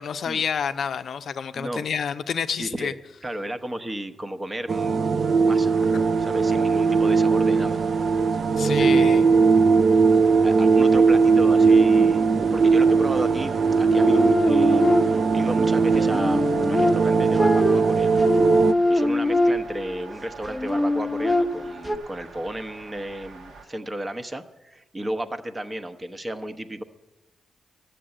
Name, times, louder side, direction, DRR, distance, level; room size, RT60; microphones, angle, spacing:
voice 1, 0.0-2.9 8.6-9.3, left 7 dB, 70° left, 0.5 m, -28 dB
voice 2, 2.6-2.9 3.2-5.8 6.2-7.8 8.5-9.5 10.2-18.2 18.9-26.8, right 1 dB, 25° right, 0.9 m, -33 dB
sound 1, 4.7-18.7, right 5 dB, 55° right, 0.4 m, -19 dB
sound 2, 5.7-23.6, right 4 dB, 80° right, 1.3 m, -44 dB
sound 3, 13.9-15.4 15.9-19.9 20.4-22.0, left 1 dB, 10° left, 0.8 m, -23 dB
12.5 x 6.8 x 8.9 m
cardioid pair, 70°, 0 cm